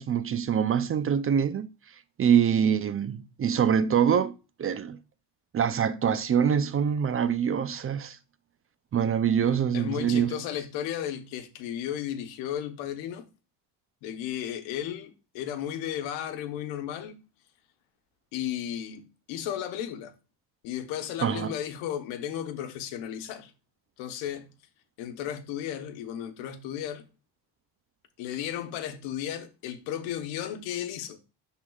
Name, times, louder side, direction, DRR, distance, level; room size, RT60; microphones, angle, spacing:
voice 1, 0.0-1.7 2.2-4.3 4.6-5.0 5.5-8.2 8.9-10.3 21.2-21.5, right 8 dB, 30° right, 0.5 m, -24 dB
voice 2, 9.4-13.2 14.0-17.2 18.3-20.1 20.6-23.5 24.0-24.5 25.0-27.0 28.2-31.2, left 10 dB, 85° left, 1.1 m, -34 dB
10.5 x 3.8 x 2.4 m
supercardioid pair, 95°, 44 cm